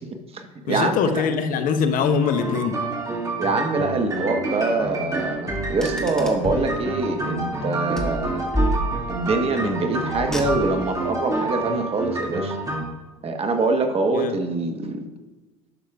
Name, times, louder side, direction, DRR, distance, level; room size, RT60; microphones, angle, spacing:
voice 1, 0.0-1.2 3.4-8.5 9.1-12.6 13.2-15.1, right 3 dB, 35° right, 6 dB, 1.1 m, -24 dB
voice 2, 0.7-2.8 14.1-14.4, left 6 dB, 55° left, 8 dB, 0.9 m, -23 dB
sound 1, 2.2-12.8, right 2 dB, 20° right, 2.2 m, -28 dB
Car, 5.5-6.7 8.0-9.3 10.1-11.0, equal, 5° left, 1.9 m, -28 dB
12.0 x 6.2 x 2.4 m, 1.2 s
hypercardioid pair, 75°, 17 cm